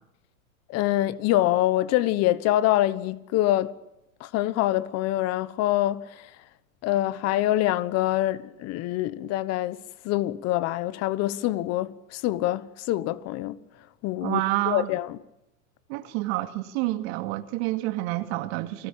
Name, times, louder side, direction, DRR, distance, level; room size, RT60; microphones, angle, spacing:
voice 1, 0.7-3.7 4.2-6.0 6.8-9.8 10.0-13.6 14.0-15.2, left 14 dB, 40° left, 1.3 m, -25 dB
voice 2, 14.2-14.9 15.9-18.9, right 17 dB, 55° right, 2.5 m, -28 dB
30.0 x 19.0 x 8.7 m
hypercardioid pair, 125°, 39 cm